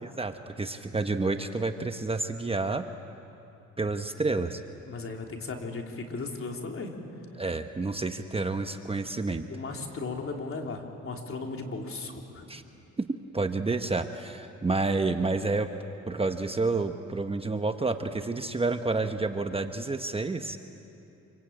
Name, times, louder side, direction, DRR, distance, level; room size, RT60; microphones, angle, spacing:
voice 1, 0.0-2.8 3.8-4.6 7.4-9.5 12.5-12.6 13.0-13.1 13.3-15.7 16.1-20.6, right 3 dB, 20° right, 7 dB, 1.1 m, -29 dB
voice 2, 4.8-7.0 9.5-12.4, left 3 dB, 45° left, 2 dB, 3.5 m, -36 dB
26.5 x 24.0 x 8.8 m, 3.0 s
cardioid pair, 90°, 30 cm